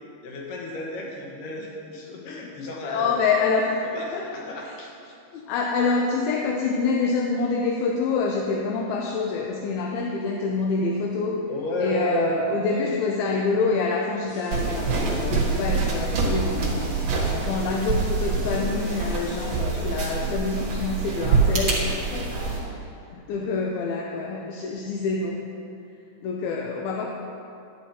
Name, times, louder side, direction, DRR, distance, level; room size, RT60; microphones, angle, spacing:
voice 1, 0.2-3.1 3.9-5.1 11.5-12.4 23.1-23.5, equal, 60° left, -2 dB, 2.6 m, -32 dB
voice 2, 2.8-3.8 4.1-4.3 4.6-4.7 5.3-11.5 11.8-16.9 17.4-22.7 23.1-25.5 26.2-27.1, left 4 dB, 80° left, 0 dB, 2.3 m, -26 dB
sound 1, 14.3-19.6, equal, 40° left, 1.9 m, -46 dB
sound 2, 14.5-22.6, right 4 dB, 60° right, 1.8 m, -25 dB
sound 3, 21.4-21.8, right 3 dB, 90° right, 1.0 m, -34 dB
12.0 x 10.0 x 2.9 m, 2.6 s
omnidirectional pair, 4.8 m